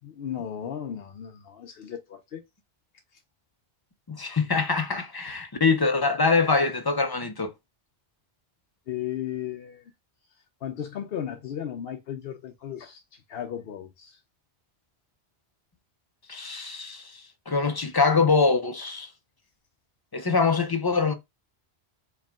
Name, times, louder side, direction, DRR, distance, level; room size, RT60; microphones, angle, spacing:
voice 1, 0.0-2.4 5.2-5.4 8.9-9.8 10.6-14.2, left 9 dB, 65° left, 0.8 m, -35 dB
voice 2, 4.1-7.5 16.3-17.1 17.5-19.1 20.1-21.1, left 4 dB, 30° left, 0.4 m, -24 dB
4.6 x 2.3 x 3.5 m
omnidirectional pair, 1.1 m